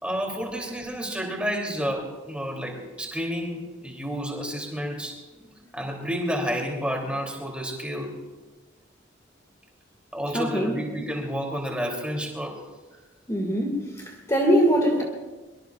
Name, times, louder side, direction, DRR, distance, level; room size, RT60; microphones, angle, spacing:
voice 1, 0.0-5.2 5.7-8.2 10.1-12.6, equal, 5° right, 0 dB, 2.9 m, -30 dB
voice 2, 10.3-10.7 13.3-15.0, equal, 15° left, 0 dB, 2.0 m, -22 dB
24.0 x 23.5 x 2.4 m, 1.2 s
head